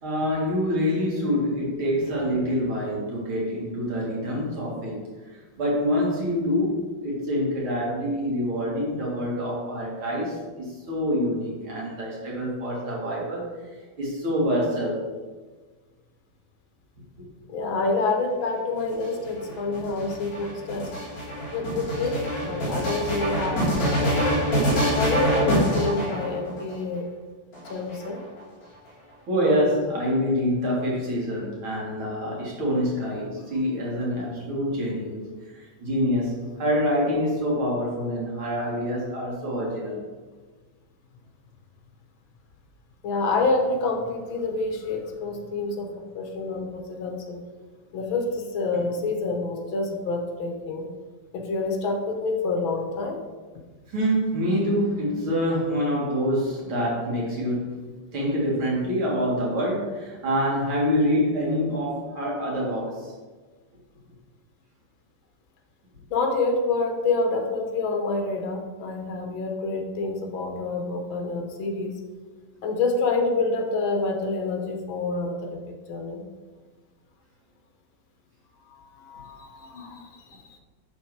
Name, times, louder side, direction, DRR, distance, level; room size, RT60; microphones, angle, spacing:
voice 1, 0.0-5.0 5.6-13.5 14.0-15.0 17.2-17.3 29.3-40.0 48.7-48.8 53.9-63.1, equal, 85° right, -4 dB, 2.9 m, -26 dB
voice 2, 17.5-20.9 21.5-24.1 25.0-27.1 27.7-28.2 43.0-45.9 46.1-47.4 47.9-50.9 51.3-53.2 66.1-71.9 72.6-76.2 78.7-80.2 80.5-80.6, left 3 dB, 75° left, 3 dB, 1.8 m, -27 dB
sound 1, 18.8-26.7 27.5-28.4, equal, 45° left, 2.2 m, -26 dB
10.5 x 3.7 x 4.6 m, 1.4 s
omnidirectional pair, 2.2 m